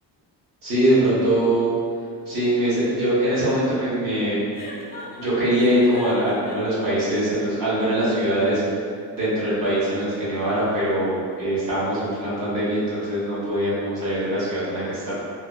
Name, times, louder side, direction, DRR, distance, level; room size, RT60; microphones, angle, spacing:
voice 1, 0.6-1.7 2.3-4.4 5.1-8.6 9.1-15.1, right 1 dB, 55° right, -9 dB, 1.1 m, -22 dB
Chuckle chortle, 4.5-6.8, left 2 dB, 25° left, 0.4 m, -38 dB
3.1 x 2.1 x 2.2 m, 2.3 s
cardioid pair, 140°, 38 cm